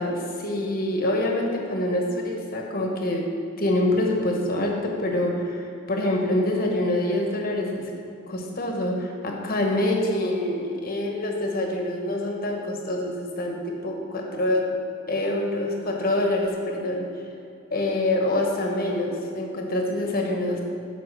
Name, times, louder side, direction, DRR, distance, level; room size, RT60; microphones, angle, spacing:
voice 1, 0.0-3.3 3.6-7.9 8.3-14.7 15.1-17.1 17.7-20.6, left 1 dB, 45° left, 1 dB, 1.1 m, -26 dB
8.1 x 5.0 x 6.1 m, 2.5 s
head